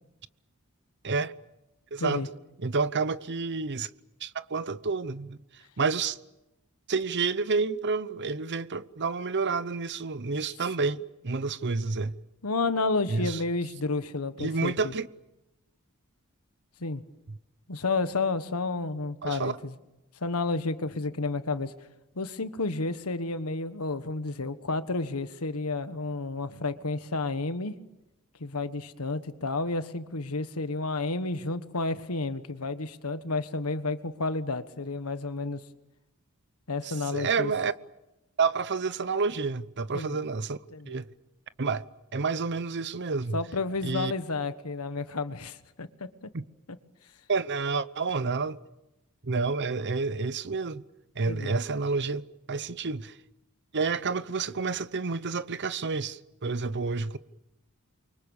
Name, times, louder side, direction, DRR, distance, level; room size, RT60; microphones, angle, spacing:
voice 1, 1.9-2.2 2.6-3.9 4.2-5.4 5.8-6.2 6.9-12.2 13.1-13.4 14.4-15.1 17.3-17.4 19.2-19.6 36.8-37.7 38.4-40.6 40.9-41.1 41.6-41.9 42.1-43.4 43.8-44.1 46.3-46.4 47.3-48.6 49.2-50.8 51.2-53.2 53.7-57.2, right 4 dB, 55° right, 0.9 m, -29 dB
voice 2, 12.4-14.9 16.8-17.0 17.7-19.7 20.2-21.7 22.1-27.8 28.4-35.6 36.7-37.5 39.9-40.2 40.7-41.0 43.3-46.1 51.3-51.6, left 3 dB, 85° left, 1.4 m, -31 dB
29.0 x 24.0 x 7.2 m
head